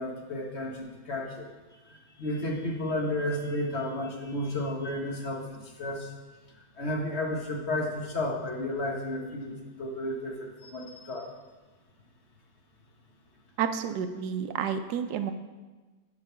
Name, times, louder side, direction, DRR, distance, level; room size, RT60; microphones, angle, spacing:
voice 1, 0.0-1.5 1.9-6.1 6.8-11.3, left 1 dB, 45° left, 0 dB, 1.4 m, -32 dB
voice 2, 13.6-15.3, right 7 dB, 90° right, 9 dB, 1.2 m, -30 dB
9.0 x 5.3 x 5.7 m, 1.2 s
omnidirectional pair, 1.7 m